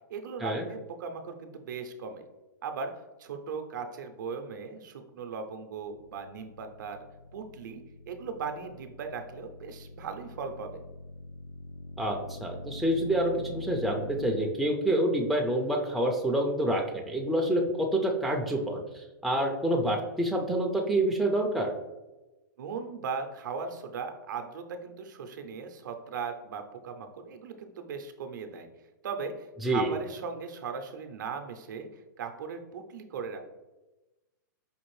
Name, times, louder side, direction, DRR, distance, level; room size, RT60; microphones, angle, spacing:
voice 1, 0.1-2.2 2.6-2.9 3.2-7.1 7.3-10.8 22.6-28.7 29.0-33.4, right 5 dB, 70° right, 6 dB, 0.5 m, -38 dB
sound 1, 5.8-14.5, left 2 dB, 80° left, 0.5 m, -44 dB
voice 2, 12.0-21.7 29.6-29.9, right 1 dB, ahead, 0 dB, 0.4 m, -27 dB
5.1 x 2.5 x 3.1 m, 1.1 s
hypercardioid pair, 140°, 10 cm